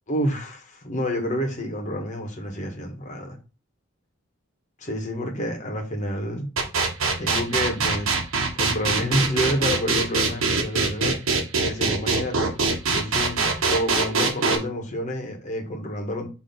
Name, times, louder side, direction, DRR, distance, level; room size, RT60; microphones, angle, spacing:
voice 1, 0.1-3.4 4.8-6.5 7.2-8.1 8.5-11.1 11.6-12.5 12.9-16.3, equal, 35° left, 1.6 m, -28 dB
sound 1, 6.6-14.6, right 4 dB, 75° right, 1.5 m, -22 dB
6.1 x 3.4 x 5.3 m
head